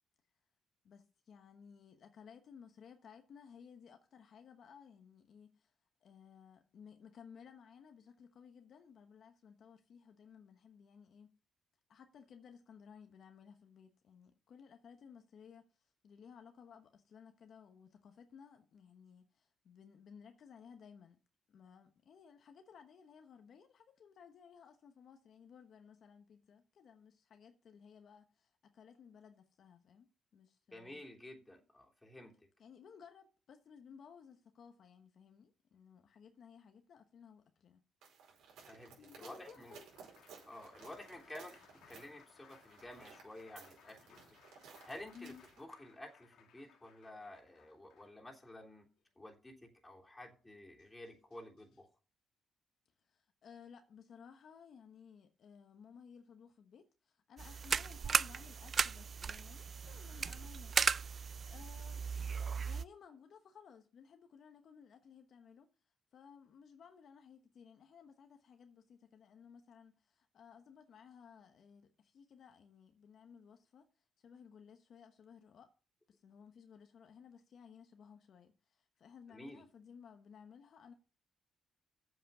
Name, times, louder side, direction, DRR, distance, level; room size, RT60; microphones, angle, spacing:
voice 1, 0.8-5.7 6.0-11.4 11.9-21.2 21.5-31.0 32.6-37.8 39.0-39.9 45.1-45.4 53.1-60.8 61.4-62.0 62.4-65.7 66.1-73.9 74.2-75.7 76.1-80.9, left 7 dB, 60° left, 1.1 m, -58 dB
voice 2, 30.7-32.3 38.7-39.7 40.5-41.6 41.9-44.2 44.8-48.9 49.1-51.9 79.3-79.6, left 1 dB, 15° left, 3.3 m, -52 dB
sound 1, 38.0-45.6, right 6 dB, 80° right, 4.9 m, -58 dB
Applause, 38.8-49.0 50.4-50.5 50.8-51.8, left 8 dB, 80° left, 1.7 m, -65 dB
sound 2, 57.4-62.8, right 6 dB, 45° right, 0.4 m, -36 dB
7.9 x 7.5 x 6.9 m
cardioid pair, 90°, 0 cm